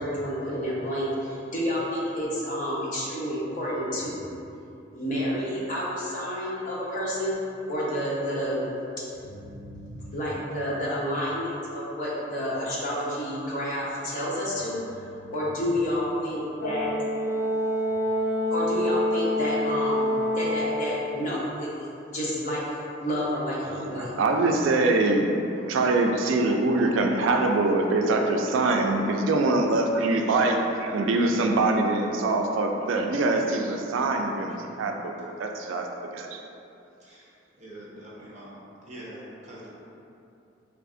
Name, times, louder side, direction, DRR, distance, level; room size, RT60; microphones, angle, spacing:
voice 1, 0.0-4.3 4.9-7.4 7.7-8.6 9.2-17.4 18.5-24.2, equal, 40° left, -7 dB, 0.8 m, -30 dB
Brass instrument, 16.6-20.8, equal, 85° left, 0.8 m, -26 dB
voice 2, 23.7-35.9 36.1-36.4, right 2 dB, 80° right, 3 dB, 0.3 m, -24 dB
voice 3, 37.0-37.3 37.6-39.8, right 1 dB, 40° right, -6 dB, 0.8 m, -45 dB
3.2 x 2.4 x 3.7 m, 2.7 s
head